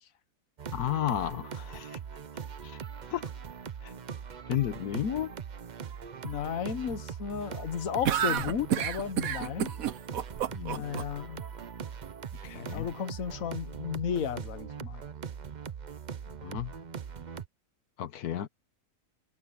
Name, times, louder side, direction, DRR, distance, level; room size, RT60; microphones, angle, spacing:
sound 1, 0.6-17.5, right 7 dB, 45° right, 0.6 m, -41 dB
voice 1, 0.7-2.0 2.6-2.8 3.1-3.3 3.8-3.9 4.5-5.3 10.5-10.9 12.4-12.9 16.4-16.7 18.0-18.5, left 11 dB, 85° left, 1.5 m, -32 dB
voice 2, 6.2-9.7 10.7-11.4 12.7-15.0, left 8 dB, 60° left, 1.5 m, -34 dB
sound 2, 8.0-11.0, right 9 dB, 65° right, 1.3 m, -29 dB
omnidirectional pair, 1.6 m